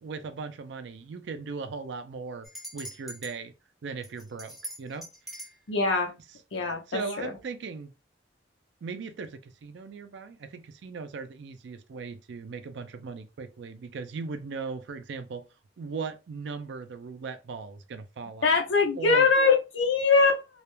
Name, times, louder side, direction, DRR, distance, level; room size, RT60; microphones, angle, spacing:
voice 1, 0.0-2.5 2.7-3.5 3.8-5.1 6.9-7.9 8.8-15.5 15.8-18.6 18.9-19.3, right 4 dB, 65° right, 0.4 m, -38 dB
sound 1, 2.4-3.4 4.0-5.6, right 1 dB, ahead, 0.6 m, -41 dB
voice 2, 5.7-6.1 6.5-7.0 18.4-20.4, left 4 dB, 75° left, 0.7 m, -22 dB
2.3 x 2.1 x 3.0 m
head